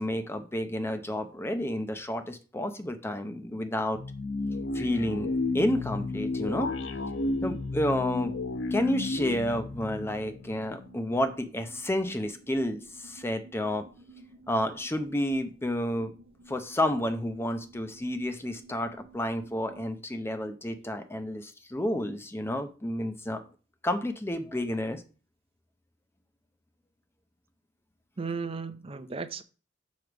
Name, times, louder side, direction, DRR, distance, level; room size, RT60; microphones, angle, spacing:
voice 1, 0.0-4.0 4.7-6.7 7.4-8.3 8.7-13.8 14.5-16.1 16.5-23.4 23.8-25.0, left 1 dB, 15° left, 0.6 m, -30 dB
sound 1, 3.9-11.1, left 3 dB, 75° left, 0.7 m, -32 dB
sound 2, 8.5-19.9, right 2 dB, 85° right, 1.1 m, -54 dB
voice 2, 28.2-29.4, right 4 dB, 30° right, 0.5 m, -35 dB
6.9 x 3.2 x 5.9 m
head